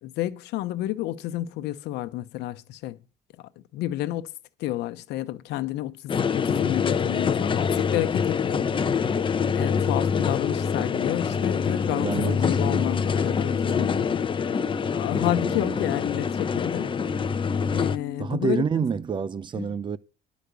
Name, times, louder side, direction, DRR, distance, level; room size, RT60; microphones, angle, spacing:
voice 1, 0.0-3.0 3.7-4.3 4.6-8.7 9.5-14.5 14.9-17.0 17.7-18.6 19.5-19.8, left 14 dB, 85° left, 0.9 m, -30 dB
sound 1, 6.1-18.0, left 6 dB, 30° left, 0.8 m, -25 dB
voice 2, 11.9-12.8 15.3-15.8 18.2-20.0, right 6 dB, 30° right, 0.6 m, -29 dB
sound 2, 13.3-18.4, left 3 dB, ahead, 5.5 m, -39 dB
11.5 x 5.2 x 8.2 m
cardioid pair, 110°, 17 cm